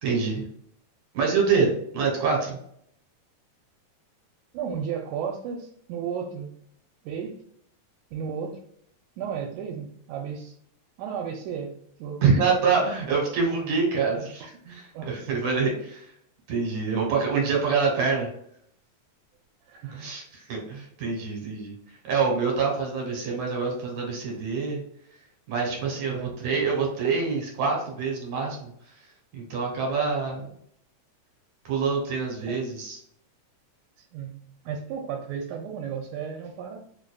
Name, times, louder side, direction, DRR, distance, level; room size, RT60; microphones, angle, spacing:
voice 1, 0.0-0.4 1.1-2.6 12.2-16.1 16.5-18.3 19.9-21.7 22.0-24.8 25.5-28.7 29.3-30.5 31.7-33.0, right 5 dB, 70° right, -1 dB, 2.2 m, -26 dB
voice 2, 4.5-6.6 7.0-7.4 8.1-8.6 9.2-10.6 11.0-12.5 14.9-15.4 16.9-17.0 17.3-17.5 19.7-20.0 26.1-26.3 32.5-32.6 34.0-36.8, right 7 dB, 85° right, 2 dB, 2.0 m, -34 dB
4.6 x 2.5 x 2.2 m, 0.68 s
omnidirectional pair, 3.4 m